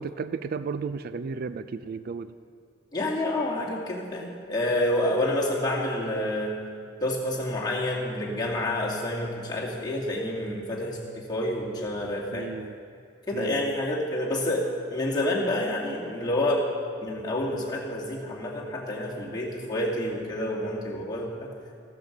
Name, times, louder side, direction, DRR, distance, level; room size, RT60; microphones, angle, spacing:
voice 1, 0.0-2.3 12.3-12.7 13.3-13.8, right 5 dB, 50° right, 13 dB, 0.4 m, -34 dB
voice 2, 2.9-6.5 7.0-12.5 13.3-16.6 17.0-21.5, left 1 dB, 20° left, -4 dB, 2.4 m, -28 dB
15.0 x 13.0 x 5.3 m, 2.3 s
head